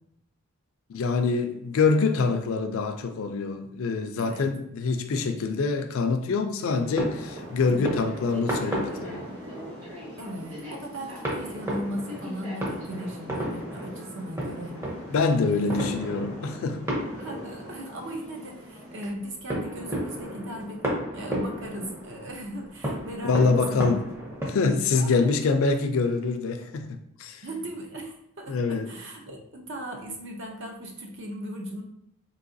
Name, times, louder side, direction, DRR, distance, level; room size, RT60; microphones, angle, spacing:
voice 1, 0.9-9.2 15.1-16.9 23.2-24.0 24.4-27.4 28.5-28.9, left 4 dB, 65° left, 0.4 m, -25 dB
sound 1, 6.6-24.5, right 1 dB, 10° right, 0.6 m, -34 dB
sound 2, 6.7-19.0, left 1 dB, 80° right, 1.3 m, -45 dB
voice 2, 7.6-8.0 10.2-14.8 15.5-15.8 17.1-20.8 21.1-23.9 25.0-25.3 27.4-31.8, right 1 dB, 55° right, 0.6 m, -37 dB
3.8 x 2.8 x 2.6 m
head